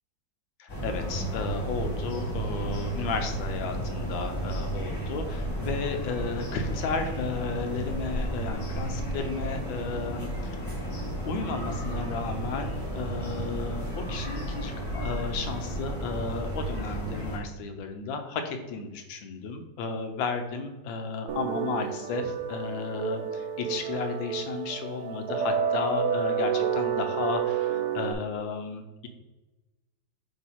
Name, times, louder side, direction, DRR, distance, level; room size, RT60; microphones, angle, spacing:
voice 1, 0.6-10.6 11.3-29.1, left 4 dB, 90° left, 6 dB, 1.5 m, -33 dB
sound 1, 0.7-17.4, right 1 dB, 40° left, 2.4 m, -33 dB
sound 2, 21.3-28.1, right 7 dB, 70° right, 1.1 m, -30 dB
8.0 x 2.8 x 4.5 m, 1.1 s
omnidirectional pair, 2.0 m